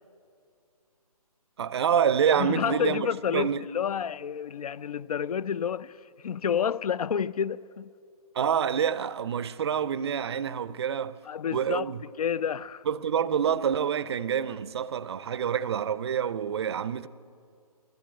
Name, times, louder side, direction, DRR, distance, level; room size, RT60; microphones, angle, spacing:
voice 1, 1.6-3.1 3.3-3.6 8.3-11.2 11.5-12.0 12.9-17.1, right 8 dB, 45° right, 0.4 m, -27 dB
voice 2, 2.3-6.0 6.2-7.9 11.3-12.8, left 8 dB, 70° left, 0.4 m, -29 dB
11.5 x 10.5 x 10.0 m
hypercardioid pair, 150°, 20 cm